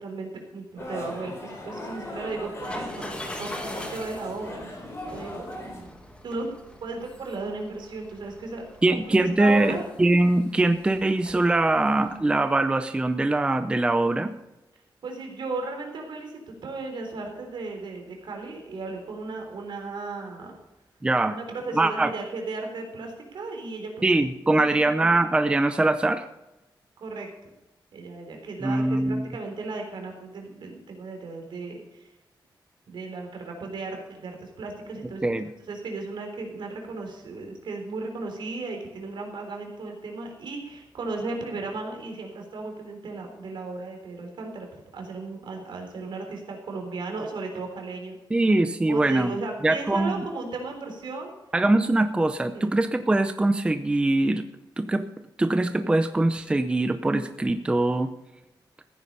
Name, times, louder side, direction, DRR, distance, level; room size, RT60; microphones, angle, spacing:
voice 1, 0.0-5.9 6.2-6.5 6.8-8.7 9.1-9.8 15.0-20.6 21.3-23.9 24.5-25.1 27.0-27.5 27.9-32.1 32.9-35.2 35.7-48.2 48.9-51.3 52.5-52.7, right 3 dB, 70° right, 3 dB, 3.7 m, -35 dB
sound 1, 0.8-5.8, left 1 dB, 35° left, 3.8 m, -38 dB
sound 2, 2.6-12.2, left 1 dB, 15° left, 1.6 m, -43 dB
voice 2, 8.8-14.3 21.0-21.4 21.7-22.1 24.0-26.2 28.6-29.3 35.2-35.5 48.3-49.3 49.6-50.2 51.5-54.4 54.8-55.0 55.4-58.1, right 2 dB, 10° right, 9 dB, 0.5 m, -22 dB
15.0 x 9.7 x 5.5 m, 0.97 s
wide cardioid pair, 180°, 8 cm